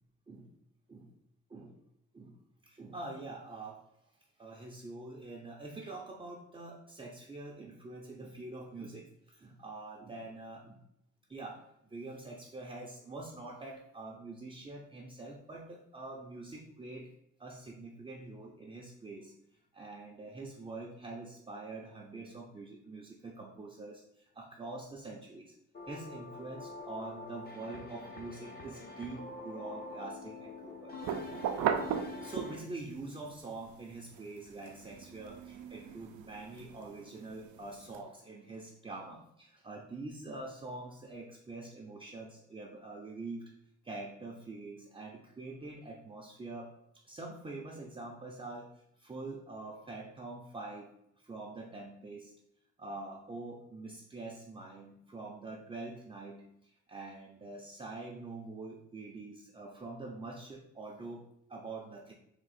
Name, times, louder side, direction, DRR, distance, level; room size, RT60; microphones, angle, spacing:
voice 1, 2.6-3.8 4.4-10.8 11.3-17.1 17.4-19.3 19.7-25.5 25.9-30.9 32.0-43.5 43.8-46.7 47.0-52.3 52.8-62.1, right 2 dB, 20° right, -2 dB, 0.6 m, -45 dB
sound 1, 25.7-32.6, left 3 dB, 30° left, 0.8 m, -46 dB
sound 2, 31.0-32.9 33.3-38.0, right 8 dB, 70° right, 0.5 m, -37 dB
3.7 x 2.6 x 4.1 m, 0.79 s
cardioid pair, 90°, 30 cm